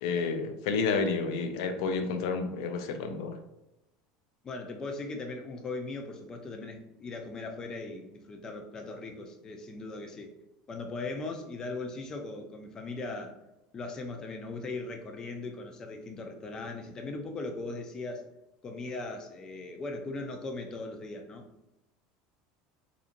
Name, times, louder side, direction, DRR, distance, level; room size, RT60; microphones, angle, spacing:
voice 1, 0.0-3.4, left 4 dB, 75° left, 6 dB, 0.4 m, -30 dB
voice 2, 4.4-10.3 10.7-13.4 13.7-18.3 18.6-21.5, left 3 dB, 25° left, 3 dB, 0.5 m, -39 dB
3.9 x 2.7 x 2.6 m, 0.94 s
supercardioid pair, 140°, 3 cm